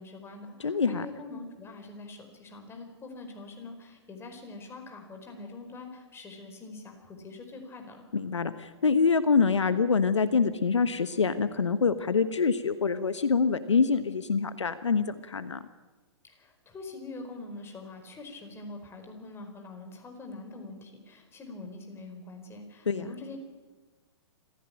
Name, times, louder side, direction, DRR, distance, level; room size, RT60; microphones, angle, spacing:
voice 1, 0.0-8.0 16.3-23.4, left 3 dB, 15° left, 4 dB, 4.7 m, -44 dB
voice 2, 0.6-1.1 8.1-15.6 22.9-23.0, left 5 dB, 80° left, 12 dB, 1.2 m, -25 dB
25.5 x 15.5 x 8.8 m, 1.2 s
figure-of-eight pair, 115°, 15 cm